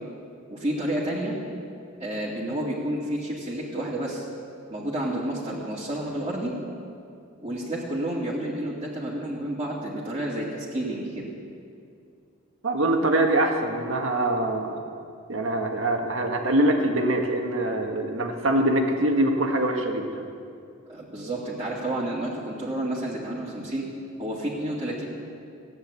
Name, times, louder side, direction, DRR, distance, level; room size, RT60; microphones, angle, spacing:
voice 1, 0.5-1.4 2.0-4.3 4.7-6.5 7.4-11.3 20.9-23.9 24.2-25.1, right 1 dB, 25° right, -8 dB, 2.4 m, -30 dB
voice 2, 12.6-14.8 15.3-20.1, right 1 dB, 70° right, 3 dB, 1.8 m, -24 dB
16.5 x 10.0 x 8.3 m, 2.4 s
head